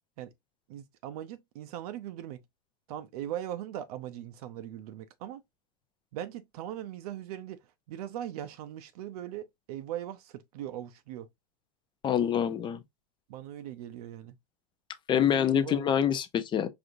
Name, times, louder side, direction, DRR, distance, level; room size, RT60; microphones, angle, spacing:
voice 1, 0.7-2.4 2.9-5.4 6.1-7.6 7.9-11.3 13.3-14.4 15.1-15.9, right 11 dB, 65° right, 0.6 m, -40 dB
voice 2, 12.0-12.8 15.1-16.7, left 9 dB, 20° left, 0.5 m, -26 dB
5.0 x 2.7 x 2.5 m
hypercardioid pair, 120°, 21 cm